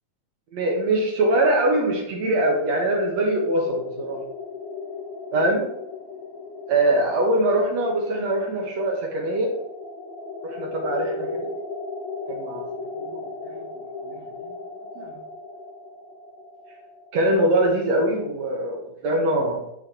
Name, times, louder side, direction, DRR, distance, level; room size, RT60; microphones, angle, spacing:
voice 1, 0.5-4.2 5.3-5.6 6.7-9.5 10.4-11.5 12.3-12.7 13.0-13.7 14.0-14.1 15.0-15.1 17.1-19.6, right 1 dB, 65° right, 0 dB, 1.9 m, -23 dB
sound 1, 1.8-18.4, left 3 dB, 55° left, 1.1 m, -37 dB
9.0 x 4.3 x 3.6 m, 0.80 s
omnidirectional pair, 4.0 m